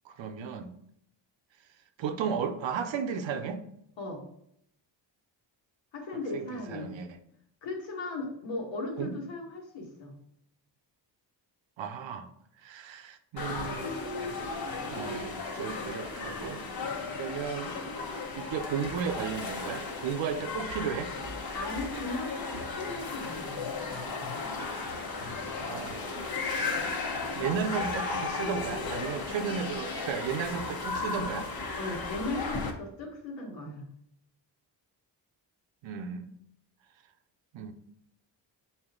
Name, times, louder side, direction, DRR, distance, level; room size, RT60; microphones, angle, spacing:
voice 1, 0.1-0.7 2.0-3.6 6.3-7.2 9.0-9.2 11.8-12.3 12.6-13.9 14.9-15.3 15.5-16.6 17.1-17.8 18.4-21.1 25.6-26.1 27.3-31.5 35.8-36.4 37.5-37.7, right 7 dB, 90° right, 8 dB, 0.8 m, -34 dB
voice 2, 5.9-6.9 7.6-10.1 21.5-23.6 31.8-33.8, left 2 dB, 85° left, -1 dB, 1.8 m, -37 dB
sound 1, 13.4-32.7, left 3 dB, 55° left, 1.1 m, -35 dB
6.2 x 4.3 x 3.7 m, 0.73 s
cardioid pair, 75°, 44 cm